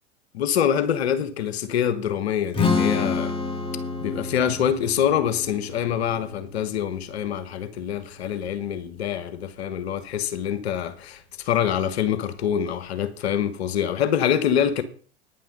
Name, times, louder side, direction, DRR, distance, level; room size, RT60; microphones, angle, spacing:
voice 1, 0.3-3.3 4.0-14.8, left 9 dB, 65° left, 1.4 m, -25 dB
Strum, 2.5-8.8, left 4 dB, 15° left, 2.2 m, -29 dB
9.9 x 9.4 x 5.4 m
figure-of-eight pair, 90°, 34 cm